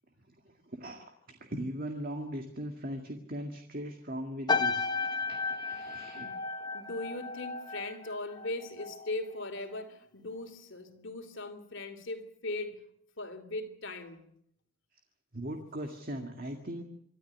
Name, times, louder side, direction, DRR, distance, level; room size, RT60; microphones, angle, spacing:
voice 1, 0.5-6.3 15.3-16.8, right 1 dB, 40° right, 2.0 m, -39 dB
sound 1, 4.5-9.1 9.4-9.8, left 4 dB, 20° left, 0.8 m, -34 dB
voice 2, 5.7-12.8 13.2-14.2, left 2 dB, 55° left, 2.9 m, -39 dB
26.0 x 13.0 x 10.0 m
head